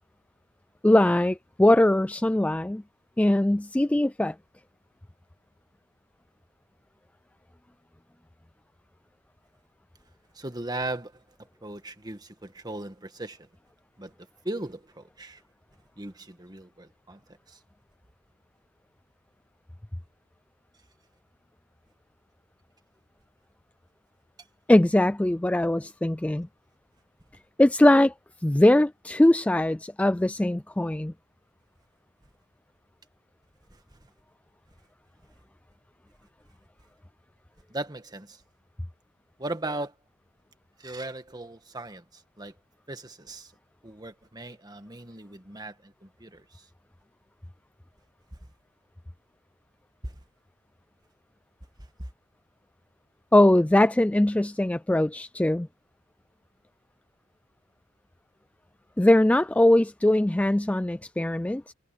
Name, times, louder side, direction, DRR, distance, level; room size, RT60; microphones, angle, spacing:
voice 1, 0.8-2.8 3.2-4.4 24.7-26.5 27.6-28.1 28.4-31.1 53.3-55.7 59.0-61.7, left 1 dB, 5° left, 0.3 m, -21 dB
voice 2, 10.4-11.2 11.6-13.5 14.0-14.1 14.4-15.4 16.0-17.2 17.5-17.6 33.9-34.0 37.7-38.4 39.4-39.9 40.8-42.5 42.9-43.5 43.8-46.6 50.0-50.2 52.0-52.1, right 2 dB, 20° right, 1.7 m, -37 dB
head